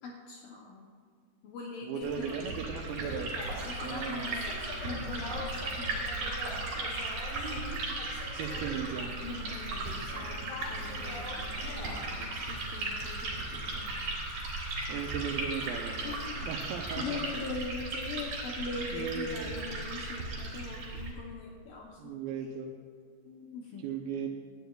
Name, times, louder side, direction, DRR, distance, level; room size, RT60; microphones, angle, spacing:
voice 1, 0.0-0.9 1.4-2.7 3.6-6.9 9.2-13.9 16.0-16.5 17.0-22.2 23.2-24.0, left 4 dB, 75° left, 0 dB, 2.0 m, -42 dB
voice 2, 1.8-3.3 3.8-4.4 8.3-9.2 14.9-16.2 16.5-17.2 18.9-19.5 22.0-22.7 23.8-24.3, right 7 dB, 80° right, 1 dB, 2.2 m, -37 dB
Liquid, 2.0-21.1, right 2 dB, 55° right, 4.1 m, -37 dB
sound 1, 3.1-17.5, left 1 dB, 50° left, 2.7 m, -44 dB
18.5 x 13.0 x 2.3 m, 2.1 s
omnidirectional pair, 5.0 m